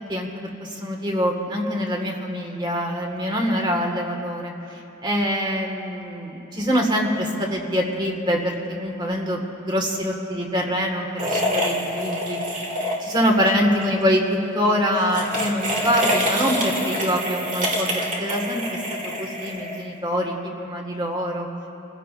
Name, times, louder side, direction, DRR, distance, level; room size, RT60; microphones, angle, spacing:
voice 1, 0.1-12.6 13.0-21.5, equal, 20° right, 1 dB, 1.7 m, -25 dB
sound 1, 11.2-13.4 13.7-13.9 15.0-20.0, equal, 40° right, 2.3 m, -26 dB
28.0 x 16.0 x 2.5 m, 3.0 s
head